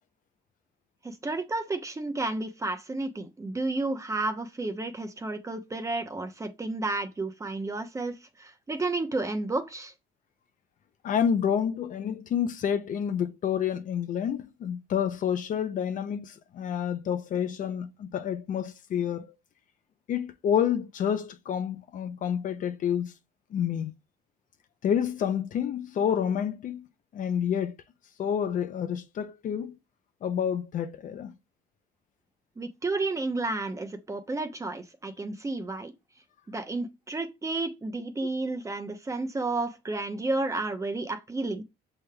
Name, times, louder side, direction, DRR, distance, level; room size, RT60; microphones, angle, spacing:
voice 1, 1.0-9.9 32.6-35.9 36.5-41.6, right 2 dB, 20° right, 0.8 m, -31 dB
voice 2, 11.0-19.4 20.1-23.1 23.5-23.9 24.8-26.9 27.1-27.7 28.2-29.7 30.2-31.3, left 8 dB, 50° left, 0.5 m, -29 dB
6.1 x 3.3 x 2.2 m
cardioid pair, 110°, 17 cm